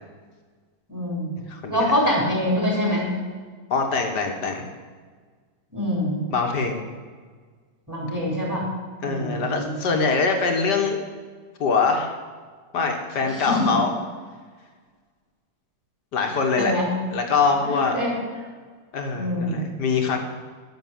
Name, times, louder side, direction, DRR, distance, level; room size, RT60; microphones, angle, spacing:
voice 1, 0.9-1.3 1.7-3.1 5.7-6.2 7.9-8.7 9.0-9.8 13.4-13.7 16.6-16.9 17.7-18.1 19.1-19.6, left 1 dB, 10° right, -4 dB, 4.1 m, -25 dB
voice 2, 1.5-1.9 3.7-4.7 6.3-6.8 9.0-11.0 11.6-12.1 12.7-13.9 16.1-16.7 17.1-18.0 18.9-20.2, left 4 dB, 70° left, 3 dB, 2.1 m, -23 dB
12.5 x 6.9 x 7.7 m, 1.5 s
omnidirectional pair, 1.9 m